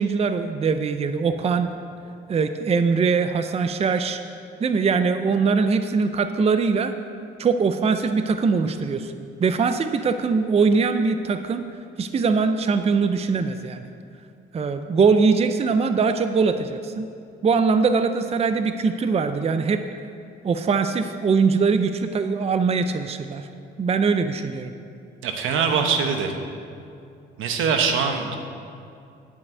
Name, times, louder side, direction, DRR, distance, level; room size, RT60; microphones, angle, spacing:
voice 1, 0.0-1.7 2.3-4.2 4.6-6.9 7.4-9.1 9.4-11.7 12.0-13.9 14.5-17.1 17.4-19.8 20.4-23.5 23.8-24.7, right 5 dB, 30° right, 9 dB, 0.5 m, -22 dB
voice 2, 25.2-26.3 27.4-28.3, right 6 dB, 85° right, 4 dB, 1.1 m, -22 dB
10.5 x 5.4 x 8.2 m, 2.5 s
cardioid pair, 90°, 20 cm